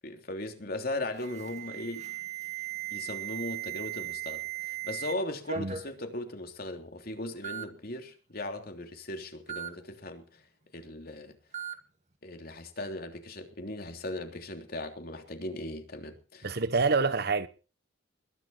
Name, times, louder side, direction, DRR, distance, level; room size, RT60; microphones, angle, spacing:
voice 1, 0.0-2.2 2.9-10.2 10.7-11.4 12.2-16.5, left 1 dB, 50° left, 3.3 m, -38 dB
Alarm, 1.2-5.1 5.5-5.9 6.7-6.8 7.4-7.7 9.5-9.7 11.5-11.8, right 11 dB, 35° right, 2.1 m, -37 dB
voice 2, 16.4-17.5, right 4 dB, 55° right, 1.1 m, -26 dB
21.5 x 11.0 x 4.2 m
head